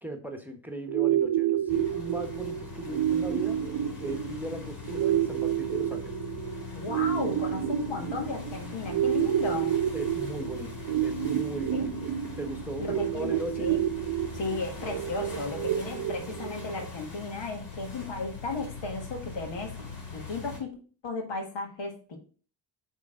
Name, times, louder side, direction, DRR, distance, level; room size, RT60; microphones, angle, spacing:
voice 1, 0.0-3.6 4.0-6.1 9.9-12.1 12.4-12.9 13.1-13.7, right 1 dB, 5° right, 4 dB, 1.2 m, -38 dB
sound 1, 0.9-16.9, right 11 dB, 90° right, 0.7 m, -29 dB
sound 2, 1.7-20.6, left 5 dB, 50° left, 3.7 m, -42 dB
voice 2, 6.7-9.8 11.7-11.9 12.8-13.8 14.3-19.7 20.1-20.7 21.0-22.2, left 3 dB, 80° left, 2 dB, 1.9 m, -35 dB
8.4 x 3.7 x 3.8 m, 0.39 s
cardioid pair, 75°, 44 cm